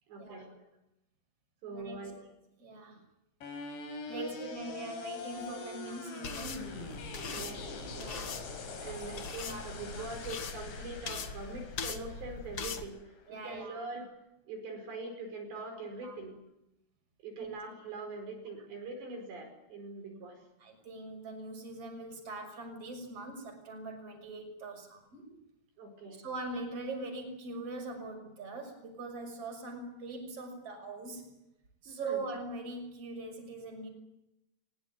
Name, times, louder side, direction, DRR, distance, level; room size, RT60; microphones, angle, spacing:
voice 1, 0.1-0.6 1.6-2.3 4.1-5.0 5.4-5.9 7.2-7.6 8.8-14.2 14.5-16.4 17.2-20.4 25.8-26.2 31.9-32.2, right 3 dB, 70° right, 4 dB, 7.1 m, -43 dB
voice 2, 2.6-3.0 4.1-6.8 7.9-9.7 10.0-10.1 13.3-13.8 16.0-16.2 17.4-17.5 20.6-25.4 26.2-31.3 31.8-33.9, right 2 dB, 30° right, 4 dB, 7.1 m, -42 dB
sound 1, 3.4-13.4, left 3 dB, 80° left, 6.7 m, -44 dB
sound 2, 6.2-12.8, left 5 dB, 50° left, 1.8 m, -42 dB
23.5 x 21.5 x 9.2 m, 0.85 s
omnidirectional pair, 5.2 m